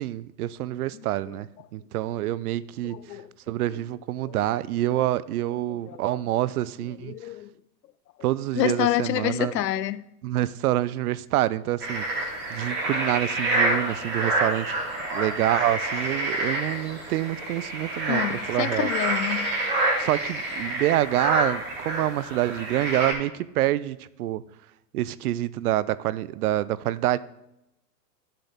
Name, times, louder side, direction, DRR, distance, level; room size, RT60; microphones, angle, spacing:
voice 1, 0.0-3.2 3.5-7.1 8.2-9.6 10.2-14.8 15.1-18.9 20.0-24.4 24.9-27.2, right 14 dB, 65° right, 0.6 m, -27 dB
voice 2, 2.8-3.3 3.7-3.8 4.3-4.4 5.7-6.0 7.0-7.5 8.5-10.1 18.1-19.5, left 13 dB, 80° left, 0.6 m, -28 dB
sound 1, 11.8-23.1, right 2 dB, 20° right, 3.5 m, -28 dB
11.5 x 7.6 x 3.6 m
hypercardioid pair, 120°, 50 cm